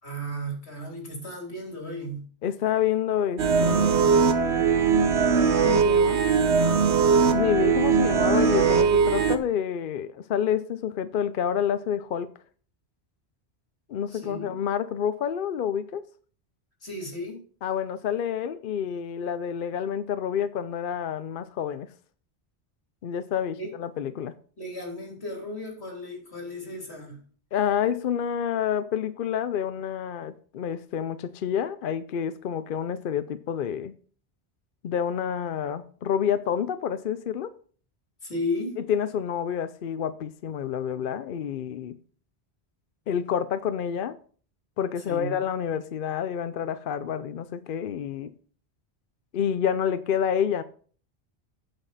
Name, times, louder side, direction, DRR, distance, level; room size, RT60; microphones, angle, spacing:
voice 1, 0.0-2.2 14.1-14.6 16.8-17.4 23.6-23.7 24.6-27.2 38.2-38.8 45.1-45.4, left 1 dB, 75° left, 3.4 m, -34 dB
voice 2, 2.4-4.7 5.6-6.2 7.3-12.3 13.9-16.0 17.6-21.9 23.0-24.3 27.5-33.9 34.8-37.5 38.9-42.0 43.1-44.2 44.8-48.3 49.3-50.6, left 8 dB, 60° left, 0.7 m, -28 dB
sound 1, 3.4-9.4, right 6 dB, 80° right, 1.1 m, -20 dB
9.0 x 7.2 x 4.1 m
omnidirectional pair, 1.1 m